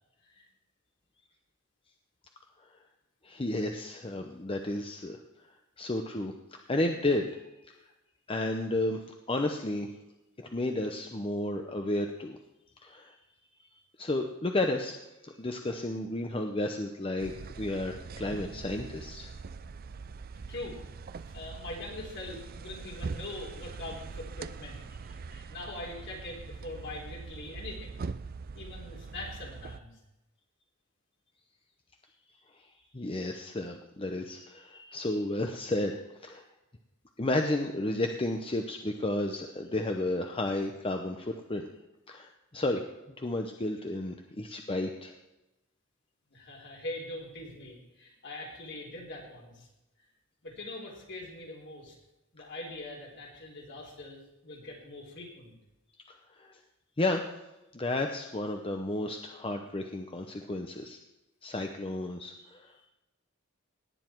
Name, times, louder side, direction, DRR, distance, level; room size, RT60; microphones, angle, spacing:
voice 1, 3.2-5.2 5.8-7.4 7.7-7.8 8.3-9.0 9.3-9.9 10.4-12.4 12.8-13.1 14.0-15.0 15.2-19.3 25.3-25.4 32.9-36.4 37.2-41.7 42.1-42.8 43.2-45.1 56.4-56.6 57.0-57.2 57.7-61.0 61.4-62.7, left 2 dB, 25° left, 4 dB, 0.8 m, -32 dB
sound 1, 17.2-29.8, right 4 dB, 45° right, 0.4 m, -42 dB
voice 2, 21.1-24.9 25.5-28.0 28.5-30.0 46.3-49.7 50.4-52.0 52.3-55.5, left 2 dB, 60° left, -1 dB, 3.9 m, -42 dB
18.0 x 9.4 x 4.6 m, 0.97 s
head